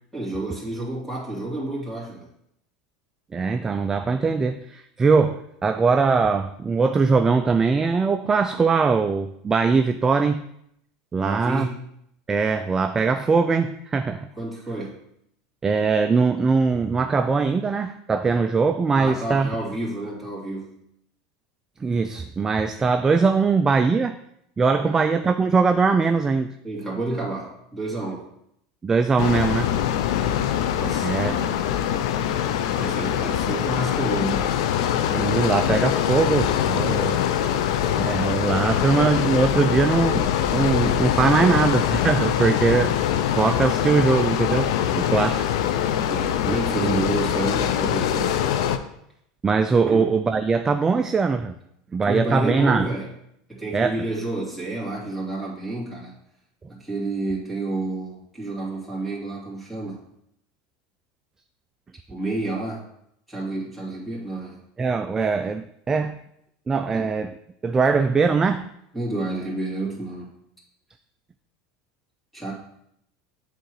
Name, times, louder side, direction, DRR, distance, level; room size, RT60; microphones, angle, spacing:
voice 1, 0.1-2.3 11.1-11.8 14.3-15.0 18.9-20.8 24.8-25.0 26.6-28.3 30.2-31.5 32.7-34.7 46.1-48.4 49.9-50.1 52.1-53.1 53.5-56.2 56.7-60.0 62.1-62.9 63.3-64.7 66.9-67.2 68.9-70.3 72.3-72.5, right 2 dB, 5° left, -5 dB, 2.7 m, -30 dB
voice 2, 3.3-10.4 11.1-11.7 12.3-14.3 15.6-19.5 21.8-24.1 24.6-26.5 28.8-29.7 31.0-31.3 35.1-37.2 38.0-42.9 43.3-45.5 46.0-46.1 46.4-47.0 49.4-51.5 51.9-52.9 53.7-54.1 64.8-66.2 66.7-67.3 67.6-68.7, right 4 dB, 20° right, 8 dB, 0.3 m, -21 dB
sound 1, 29.2-48.8, left 10 dB, 75° left, 0.5 m, -23 dB
8.1 x 3.7 x 4.7 m, 0.75 s
supercardioid pair, 120°, 3 cm